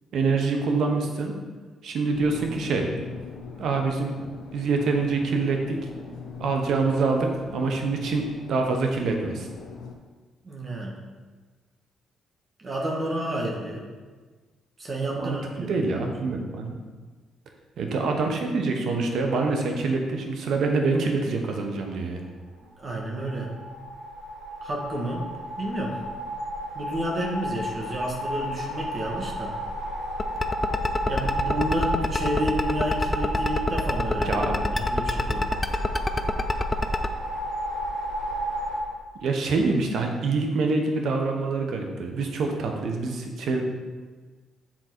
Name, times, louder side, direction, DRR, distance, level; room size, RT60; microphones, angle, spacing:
voice 1, 0.1-1.3 1.8-2.9 3.6-4.1 4.5-6.1 6.4-8.2 8.5-9.5 15.2-16.8 17.8-22.2 34.2-34.6 39.2-43.6, right 3 dB, 70° right, 3 dB, 1.0 m, -25 dB
sound 1, 2.1-10.0, left 5 dB, 80° left, 0.8 m, -41 dB
voice 2, 10.4-11.0 12.6-13.9 14.8-16.0 22.8-23.5 24.6-25.3 25.6-26.0 26.7-29.5 31.1-35.5, right 1 dB, 40° right, -1 dB, 1.3 m, -30 dB
sound 2, 22.9-38.8, equal, 90° right, 1.2 m, -32 dB
sound 3, 30.2-37.1, left 2 dB, 20° left, 0.4 m, -25 dB
7.3 x 3.8 x 4.5 m, 1.4 s
cardioid pair, 90°, 0 cm